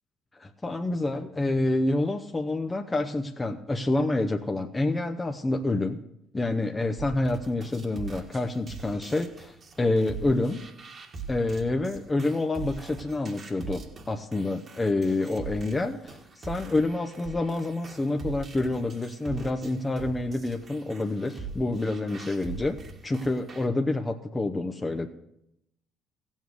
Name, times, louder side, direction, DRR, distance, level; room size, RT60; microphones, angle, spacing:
voice 1, 0.4-6.0 6.3-10.6 11.3-13.8 14.1-22.8 23.0-25.1, left 2 dB, 20° left, 4 dB, 0.9 m, -28 dB
sound 1, 7.0-23.7, right 4 dB, 45° right, 1.8 m, -42 dB
15.5 x 7.4 x 6.4 m, 0.80 s
supercardioid pair, 80°, 0 cm